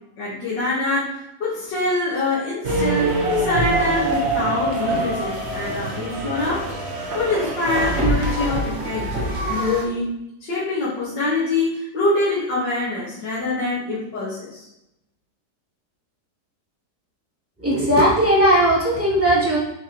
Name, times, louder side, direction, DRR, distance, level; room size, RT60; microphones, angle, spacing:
voice 1, 0.2-6.6 7.1-10.1 10.4-14.7, left 2 dB, 85° left, -9 dB, 2.3 m, -24 dB
sound 1, 2.6-9.8, right 1 dB, 40° right, 1.3 m, -24 dB
voice 2, 17.6-19.6, right 1 dB, 10° right, -8 dB, 2.6 m, -17 dB
7.2 x 5.9 x 3.0 m, 0.86 s
omnidirectional pair, 1.9 m